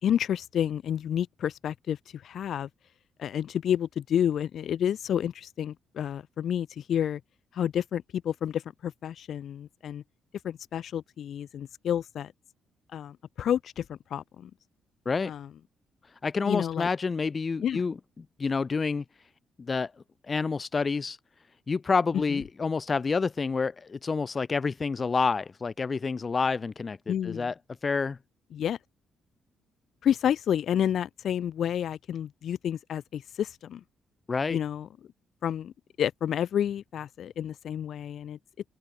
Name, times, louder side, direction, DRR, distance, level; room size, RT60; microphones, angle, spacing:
voice 1, 0.0-2.7 3.2-7.2 7.5-10.0 10.4-12.3 12.9-14.5 15.3-15.5 16.5-16.9 17.6-17.8 22.3-22.4 27.1-27.5 28.5-28.8 30.0-33.8 34.5-34.9 35.4-35.7 36.0-38.4, left 9 dB, 65° left, 4.3 m, -30 dB
voice 2, 16.2-17.9 18.4-19.0 19.6-19.9 20.3-21.2 21.7-27.5 27.8-28.2 34.3-34.6, left 4 dB, 35° left, 2.7 m, -28 dB
open air
cardioid pair, 90°, 0 cm